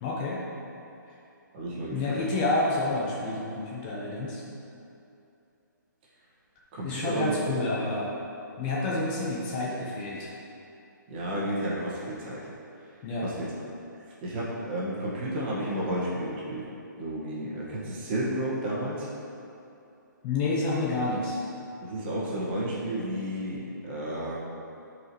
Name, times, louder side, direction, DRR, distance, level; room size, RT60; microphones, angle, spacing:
voice 1, 0.0-0.4 1.9-4.4 6.8-8.1 8.6-10.3 13.0-13.3 20.2-21.4, left 2 dB, 25° left, -4 dB, 0.9 m, -29 dB
voice 2, 1.5-2.2 6.7-7.5 11.1-12.5 13.2-13.5 14.2-16.7 17.0-19.1 21.8-24.4, right 1 dB, 30° right, -6 dB, 1.7 m, -32 dB
11.0 x 4.9 x 3.1 m, 2.7 s
hypercardioid pair, 155°, 11 cm